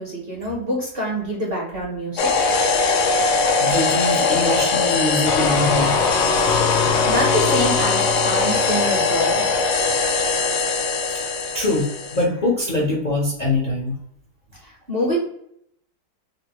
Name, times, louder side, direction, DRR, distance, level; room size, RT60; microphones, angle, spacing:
voice 1, 0.0-2.3 6.8-9.4 14.6-15.2, equal, 50° right, -3 dB, 0.7 m, -25 dB
sound 1, 2.2-12.2, left 4 dB, 85° left, 1.3 m, -20 dB
voice 2, 3.6-6.2 6.7-6.8 11.1-11.3 11.5-13.9, left 2 dB, 65° left, -3 dB, 0.4 m, -23 dB
3.7 x 2.2 x 2.8 m, 0.72 s
omnidirectional pair, 1.9 m